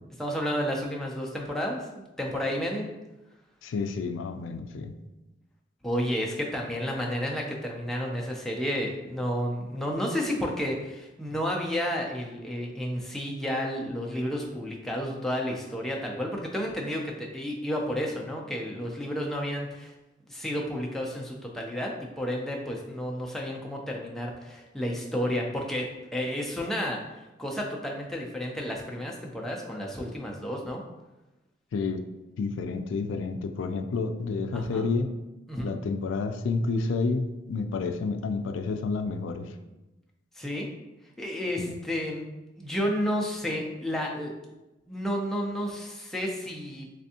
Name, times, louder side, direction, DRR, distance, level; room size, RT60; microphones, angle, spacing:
voice 1, 0.2-2.9 5.8-19.9 20.3-21.9 22.2-25.9 26.1-27.0 27.4-30.8 34.5-34.9 35.5-35.7 40.4-40.7 41.2-42.2 42.6-44.3 44.9-46.9, equal, ahead, -1 dB, 0.4 m, -31 dB
voice 2, 3.6-4.9 31.7-32.0 32.4-35.1 35.6-39.5 41.6-41.8, left 4 dB, 80° left, 7 dB, 0.3 m, -30 dB
3.4 x 3.3 x 2.8 m, 1.0 s
head